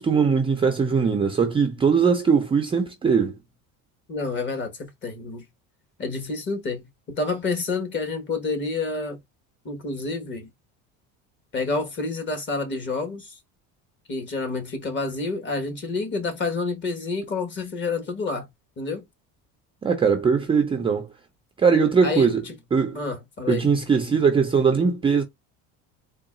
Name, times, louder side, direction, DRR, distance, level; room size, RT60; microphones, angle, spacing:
voice 1, 0.0-3.4 19.8-21.1 21.6-22.4 22.7-23.0 23.5-25.2, right 5 dB, 15° right, 0.4 m, -20 dB
voice 2, 4.1-5.4 6.0-9.2 9.6-10.5 11.5-13.4 14.1-18.5 18.8-19.0 22.0-22.5 22.9-23.6, left 3 dB, 35° left, 1.4 m, -29 dB
3.9 x 2.3 x 3.7 m
cardioid pair, 150°, 34 cm